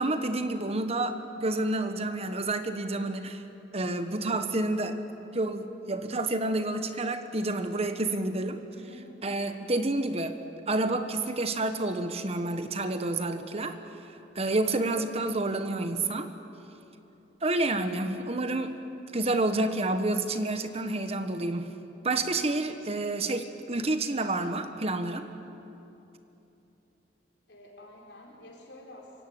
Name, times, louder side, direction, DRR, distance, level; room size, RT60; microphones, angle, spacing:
voice 1, 0.0-3.4 3.7-5.0 5.3-8.6 9.2-10.4 10.7-13.8 14.0-16.3 17.4-18.8 19.1-21.7 22.0-25.3, right 2 dB, 35° right, 9 dB, 1.2 m, -29 dB
voice 2, 8.7-9.2 27.5-29.2, left 1 dB, 80° left, -2 dB, 5.1 m, -49 dB
25.5 x 16.0 x 9.2 m, 2.9 s
head